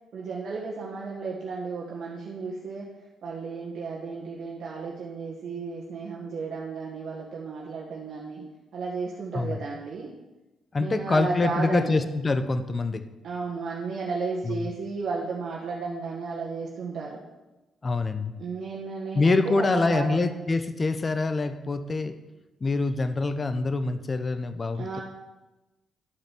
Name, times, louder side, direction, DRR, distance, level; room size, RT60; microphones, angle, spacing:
voice 1, 0.1-2.9 3.2-8.4 8.7-10.1 10.8-12.1 13.2-17.2 18.4-20.4 24.7-25.0, right 4 dB, 60° right, -4 dB, 1.6 m, -33 dB
voice 2, 10.7-13.0 14.4-14.6 17.8-18.3 19.1-22.1 22.6-25.0, left 3 dB, 30° left, 10 dB, 0.7 m, -25 dB
11.5 x 5.2 x 6.0 m, 1.0 s
cardioid pair, 90°, 0 cm